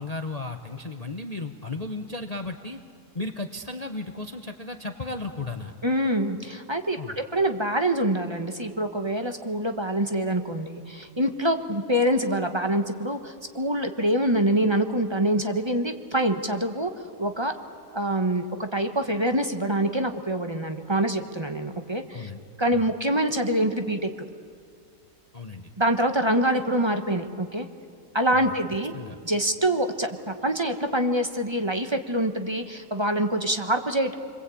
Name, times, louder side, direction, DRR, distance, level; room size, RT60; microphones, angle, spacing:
voice 1, 0.0-2.8 3.1-5.7 7.0-7.2 22.1-22.4 22.7-22.9 25.3-25.7 28.3-28.5 28.9-29.2, left 3 dB, 30° left, 5 dB, 1.0 m, -35 dB
voice 2, 5.8-16.9 17.2-17.5 17.9-22.3 22.6-24.1 25.8-27.7 28.1-28.9 29.2-34.1, right 1 dB, 20° right, 6 dB, 1.1 m, -25 dB
29.0 x 22.0 x 8.5 m, 2.3 s
omnidirectional pair, 1.7 m